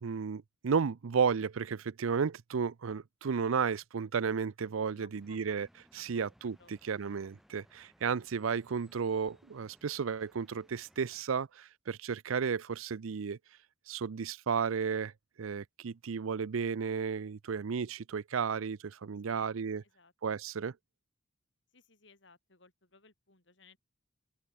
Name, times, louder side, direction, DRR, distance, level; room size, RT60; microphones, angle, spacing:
voice 1, 0.0-5.7 5.9-6.5 6.8-13.4 13.9-15.1 15.4-19.8 20.2-20.7, right 6 dB, 90° right, 0.5 m, -33 dB
voice 2, 4.9-5.4 5.9-7.1 19.2-19.5 19.8-20.1 21.7-23.8, left 4 dB, 60° left, 3.6 m, -62 dB
sound 1, 5.2-11.2, equal, ahead, 5.0 m, -65 dB
open air
head